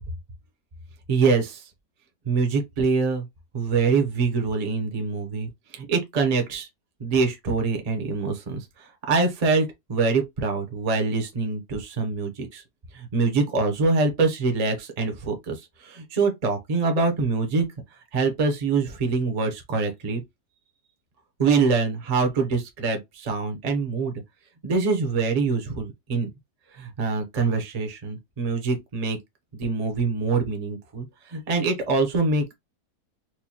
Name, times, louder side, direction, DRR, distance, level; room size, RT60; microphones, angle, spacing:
voice 1, 1.1-1.6 2.3-3.2 3.5-6.7 7.0-12.6 12.9-17.6 18.1-20.2 21.4-24.2 24.6-26.3 26.7-29.2 29.5-32.5, right 4 dB, 35° right, 0.7 m, -24 dB
4.7 x 2.2 x 2.8 m
omnidirectional pair, 1.7 m